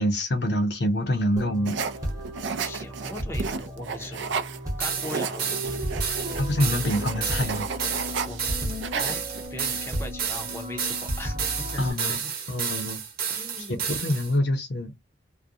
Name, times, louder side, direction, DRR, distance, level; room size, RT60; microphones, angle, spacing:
voice 1, 0.0-1.8 6.4-7.7 11.8-12.2 12.5-13.0 13.6-13.7 14.0-14.9, left 1 dB, 60° left, 0.6 m, -25 dB
sound 1, 1.4-11.9, equal, 20° right, 0.9 m, -34 dB
sound 2, 1.7-4.6 4.9-8.5 8.7-9.5, right 5 dB, 70° right, 0.4 m, -32 dB
voice 2, 2.6-4.4 4.8-6.0 8.2-8.5 9.0-9.2 9.5-12.3 13.3-13.9, left 1 dB, 15° left, 0.5 m, -40 dB
sound 3, 4.8-14.3, right 7 dB, 50° right, 0.9 m, -31 dB
2.4 x 2.1 x 2.6 m
head